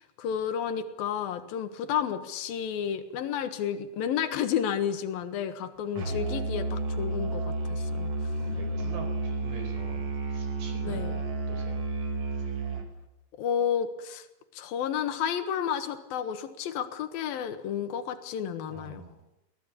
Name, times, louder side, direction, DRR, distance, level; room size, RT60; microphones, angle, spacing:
voice 1, 0.0-8.1 10.8-11.2 13.4-14.3 14.5-19.0, left 8 dB, 75° left, 9 dB, 3.2 m, -31 dB
Musical instrument, 6.0-13.0, right 2 dB, 45° right, 2.8 m, -31 dB
voice 2, 8.4-11.1 11.5-11.9 18.7-19.2, right 2 dB, 85° right, 6 dB, 6.5 m, -45 dB
23.5 x 17.0 x 8.6 m, 0.92 s
omnidirectional pair, 4.3 m